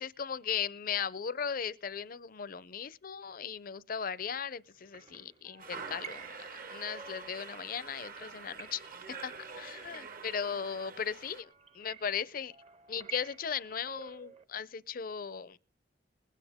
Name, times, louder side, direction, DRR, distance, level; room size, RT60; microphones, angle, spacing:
voice 1, 0.0-12.5 12.9-15.6, left 7 dB, 50° left, 0.6 m, -37 dB
sound 1, 4.7-14.4, right 7 dB, 35° right, 0.8 m, -53 dB
sound 2, 5.6-11.4, right 5 dB, 55° right, 1.1 m, -46 dB
20.5 x 9.3 x 3.6 m
head